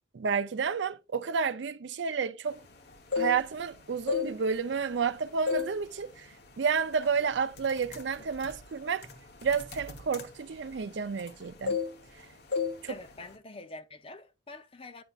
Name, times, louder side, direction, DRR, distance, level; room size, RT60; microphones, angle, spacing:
voice 1, 0.1-2.6 3.2-6.3 6.6-9.1 9.4-11.8 12.8-13.0, right 6 dB, 65° right, 0.4 m, -30 dB
sound 1, 2.9-3.7 4.0-5.1 5.5-5.8 6.2-6.4 7.0-7.2 7.5-11.4 11.7-12.2 12.5-12.8 13.1-13.3, left 5 dB, 55° left, 1.1 m, -33 dB
voice 2, 12.9-15.0, left 3 dB, 30° left, 0.6 m, -46 dB
9.2 x 5.6 x 2.4 m
head